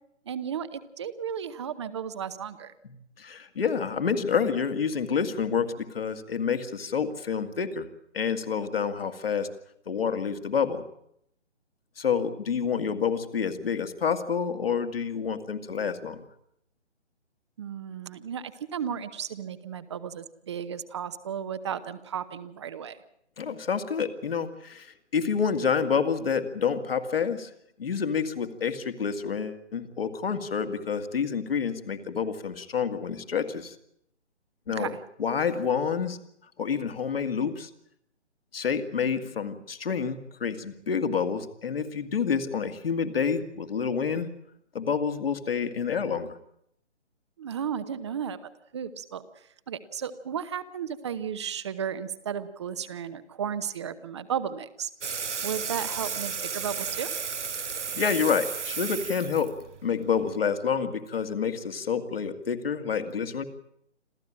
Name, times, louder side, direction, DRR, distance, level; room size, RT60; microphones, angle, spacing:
voice 1, 0.2-2.7 17.6-23.0 34.7-35.0 47.4-54.9 55.4-57.1, right 8 dB, 25° right, 13 dB, 0.9 m, -34 dB
voice 2, 2.8-7.9 8.1-9.5 9.9-10.8 12.0-16.2 23.4-27.5 27.8-33.7 34.7-34.9 35.2-36.2 36.6-37.7 38.5-44.3 44.7-46.4 57.9-59.5 59.8-63.4, left 6 dB, 55° left, 8 dB, 2.2 m, -28 dB
sound 1, 55.0-60.4, right 6 dB, 80° right, 0.8 m, -34 dB
27.0 x 15.0 x 8.7 m, 0.75 s
figure-of-eight pair, 145°, 35 cm